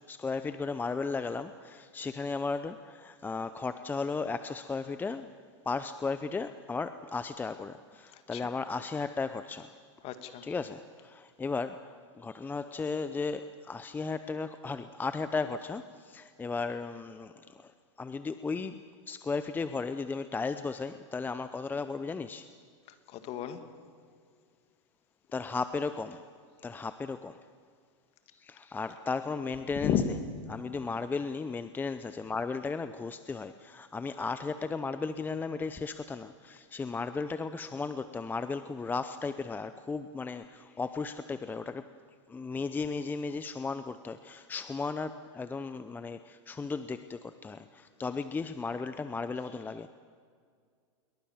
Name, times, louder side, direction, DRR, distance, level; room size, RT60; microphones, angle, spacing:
voice 1, 0.1-5.3 5.7-9.7 10.4-17.7 18.0-22.5 25.3-26.3 26.6-27.4 28.4-29.9 30.5-41.9 42.3-49.9, left 4 dB, 10° left, 12 dB, 0.7 m, -35 dB
voice 2, 8.1-8.5 10.0-10.5 23.1-23.6 29.7-30.1, left 9 dB, 40° left, 9 dB, 2.3 m, -32 dB
28.0 x 22.5 x 7.3 m, 2.1 s
hypercardioid pair, 130°, 16 cm